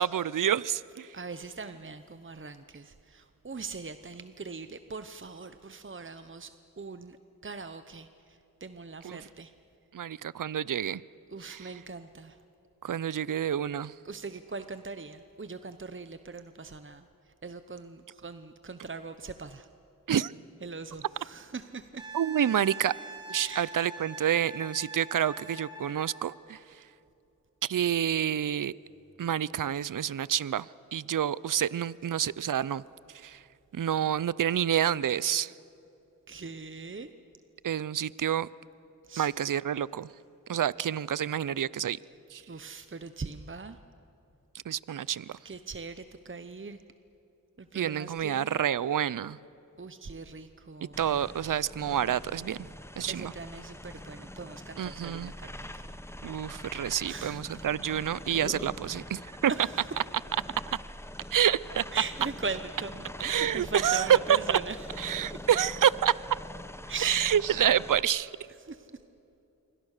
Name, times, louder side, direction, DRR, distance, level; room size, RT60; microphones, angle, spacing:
voice 1, 0.0-1.1 9.0-9.2 9.9-11.0 11.5-11.7 12.8-13.9 20.1-20.3 22.1-22.9 23.3-26.6 27.6-28.7 29.2-30.7 30.9-32.8 33.2-33.4 33.7-35.5 37.6-38.5 39.2-40.1 40.5-42.0 42.3-42.4 44.7-45.4 47.7-49.4 51.0-52.7 53.0-53.3 54.8-55.3 56.2-59.5 61.3-61.8 63.2-64.4 65.0-66.2 67.0-68.3, right 9 dB, 70° right, 20 dB, 0.5 m, -28 dB
voice 2, 1.1-7.2 7.4-9.5 11.3-12.4 14.0-17.1 17.4-19.7 20.6-22.0 23.4-23.7 36.3-37.1 39.0-39.3 42.5-43.8 45.4-46.8 47.6-48.5 49.8-51.1 53.1-55.9 57.0-57.7 59.5-59.9 61.9-65.4 66.9-67.2 68.6-69.0, right 4 dB, 35° right, 10 dB, 0.9 m, -41 dB
Wind instrument woodwind instrument, 22.0-26.2 28.9-29.0, right 2 dB, 15° right, 5.3 m, -43 dB
sound 1, 50.9-68.0, left 1 dB, 5° left, 1.0 m, -44 dB
27.5 x 24.0 x 6.6 m, 2.8 s
cardioid pair, 40°, 34 cm